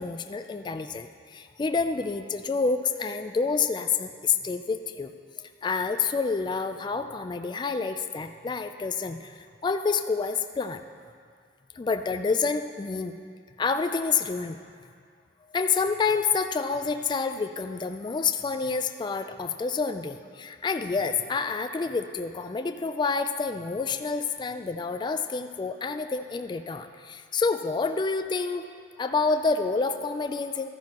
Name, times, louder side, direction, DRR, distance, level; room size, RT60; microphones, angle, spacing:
voice 1, 0.0-5.1 5.4-10.8 11.8-13.2 13.6-14.6 15.5-28.7 29.0-30.7, left 4 dB, 25° left, 8 dB, 0.3 m, -28 dB
13.5 x 10.5 x 2.9 m, 2.2 s
head